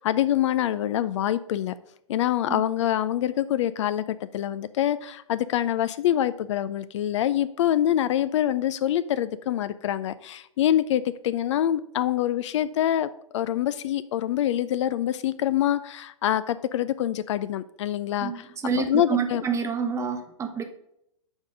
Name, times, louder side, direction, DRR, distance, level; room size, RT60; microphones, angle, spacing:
voice 1, 0.0-1.7 2.1-13.1 13.3-18.5 18.8-19.4, left 11 dB, 60° left, 15 dB, 0.4 m, -25 dB
voice 2, 18.2-20.6, right 6 dB, 15° right, 7 dB, 0.9 m, -28 dB
6.3 x 4.9 x 5.1 m, 0.79 s
hypercardioid pair, 115°, 17 cm